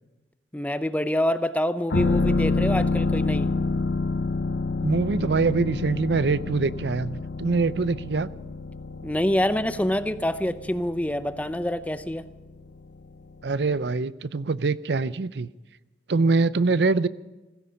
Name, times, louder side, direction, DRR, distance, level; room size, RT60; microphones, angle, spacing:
voice 1, 0.5-3.5 9.0-12.3, left 1 dB, 10° left, 0.6 m, -26 dB
sound 1, 1.9-13.5 13.8-13.9, left 3 dB, 80° left, 0.7 m, -28 dB
voice 2, 4.8-8.3 13.4-15.5 16.1-17.1, right 3 dB, 70° right, 0.6 m, -24 dB
17.0 x 16.0 x 5.2 m
head